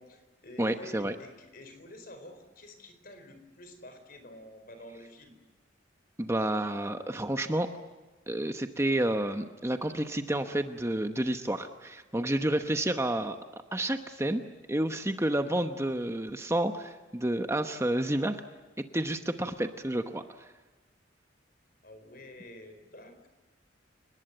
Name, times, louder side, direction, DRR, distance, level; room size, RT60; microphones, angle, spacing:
voice 1, 0.0-5.4 21.8-23.3, left 1 dB, 50° left, 8 dB, 4.5 m, -49 dB
voice 2, 0.6-1.1 6.2-7.7 8.3-13.4 13.7-14.4 14.7-18.4 18.9-20.5, right 1 dB, 15° right, 7 dB, 1.0 m, -30 dB
30.0 x 19.5 x 7.9 m, 1.2 s
head